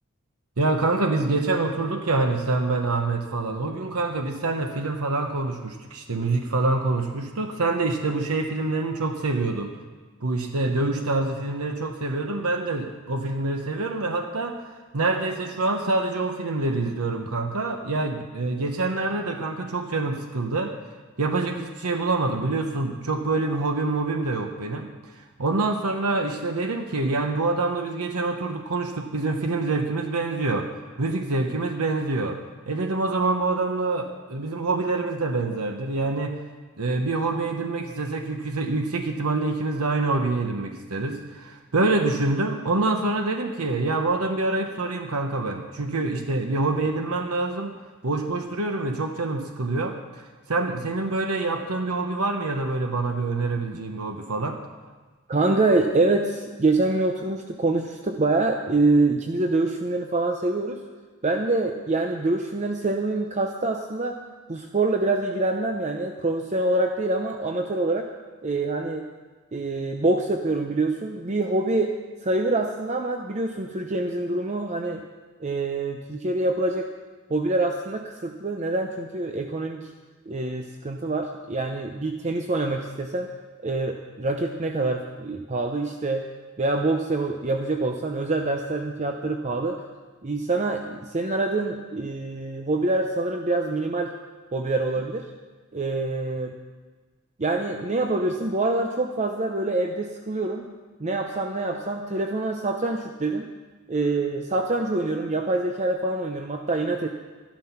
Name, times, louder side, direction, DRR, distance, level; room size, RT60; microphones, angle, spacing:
voice 1, 0.6-9.8 10.2-20.7 21.2-24.9 25.2-30.7 31.0-32.4 32.7-36.4 36.8-47.8 48.0-50.0 50.5-54.6, right 3 dB, 85° right, 4 dB, 1.0 m, -26 dB
voice 2, 55.3-60.8 61.2-64.2 64.5-68.1 68.4-69.0 69.5-71.9 72.2-75.0 75.4-76.9 77.3-79.9 80.3-83.3 83.6-86.2 86.6-89.8 90.2-94.1 94.5-95.2 95.7-96.5 97.4-100.7 101.0-103.5 103.9-107.1, right 2 dB, 30° right, 4 dB, 0.7 m, -25 dB
13.0 x 12.0 x 5.8 m, 1.3 s
head